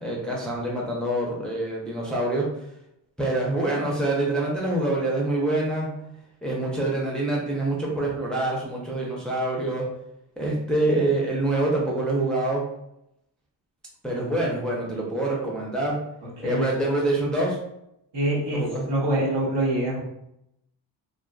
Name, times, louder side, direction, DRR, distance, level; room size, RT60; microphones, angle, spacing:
voice 1, 0.0-2.5 3.2-5.9 6.4-9.9 10.4-12.6 14.0-16.0 16.4-17.6 18.5-18.9, right 2 dB, ahead, -4 dB, 0.6 m, -25 dB
voice 2, 16.2-16.7 18.1-20.0, right 1 dB, 60° right, -4 dB, 1.2 m, -25 dB
2.6 x 2.4 x 2.3 m, 0.82 s
cardioid pair, 75°, 46 cm